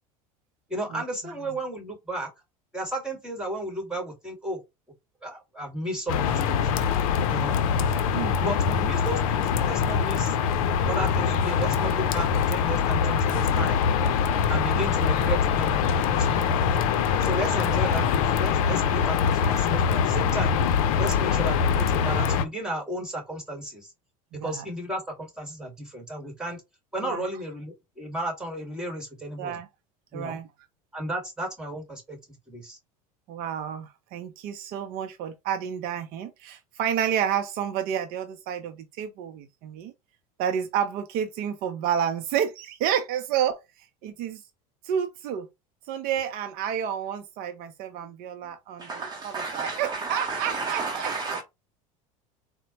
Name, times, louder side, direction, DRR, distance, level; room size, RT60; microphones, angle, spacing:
voice 1, 0.7-2.3 2.7-4.6 5.2-6.7 7.3-7.6 8.4-10.4 10.9-13.8 14.5-16.8 17.2-20.6 21.0-23.9 24.3-26.6 26.9-29.6 30.1-30.4 30.9-32.2 32.5-32.8, right 1 dB, 5° right, 1.6 m, -34 dB
sound 1, 6.1-22.4, left 7 dB, 75° left, 0.5 m, -23 dB
voice 2, 24.3-24.6 27.0-27.2 29.4-29.7 30.1-30.5 33.3-39.9 40.4-43.6 44.0-44.4 44.8-45.5 45.9-48.9 49.2-51.4, right 9 dB, 55° right, 0.5 m, -30 dB
voice 3, 48.8-51.4, right 4 dB, 25° right, 0.8 m, -32 dB
4.1 x 2.1 x 2.9 m
hypercardioid pair, 85°, 18 cm